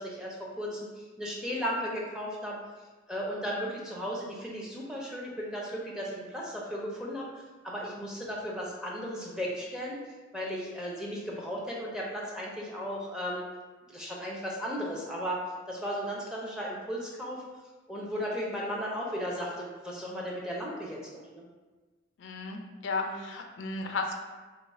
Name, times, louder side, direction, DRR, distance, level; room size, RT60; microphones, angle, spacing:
voice 1, 0.0-2.6 3.1-10.0 10.3-13.5 13.9-17.4 17.9-21.5 23.0-23.3, equal, 5° right, -4 dB, 0.5 m, -35 dB
voice 2, 22.2-24.1, left 3 dB, 70° left, 4 dB, 0.4 m, -34 dB
2.9 x 2.3 x 4.1 m, 1.3 s
head